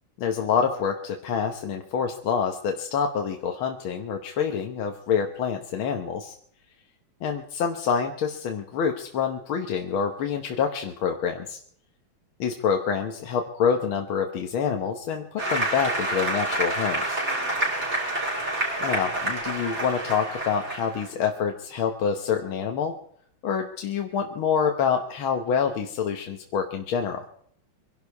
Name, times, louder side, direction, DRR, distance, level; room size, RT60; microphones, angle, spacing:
voice 1, 0.2-6.3 7.2-11.6 12.4-17.2 18.8-23.0 23.4-27.2, left 7 dB, 80° left, 4 dB, 2.0 m, -27 dB
Applause, 15.4-21.0, right 1 dB, 30° right, 5.9 m, -28 dB
24.0 x 11.5 x 4.7 m, 0.64 s
omnidirectional pair, 2.2 m